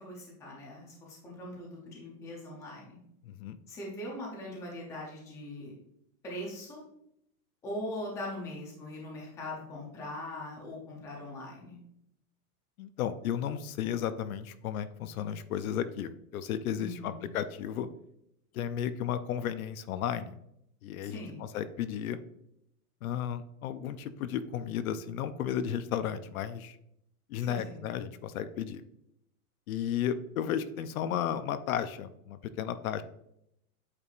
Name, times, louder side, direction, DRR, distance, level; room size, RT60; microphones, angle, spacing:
voice 1, 0.0-3.0 3.7-5.7 6.2-6.8 7.6-11.8 16.8-17.2 21.0-21.4 27.4-27.8, left 1 dB, 5° left, -2 dB, 0.6 m, -41 dB
voice 2, 3.2-3.6 12.8-17.9 18.5-20.4 20.8-22.2 23.0-26.7 27.3-28.8 29.7-33.0, left 9 dB, 70° left, 12 dB, 0.6 m, -34 dB
8.5 x 4.7 x 2.5 m, 0.77 s
supercardioid pair, 175°, 44 cm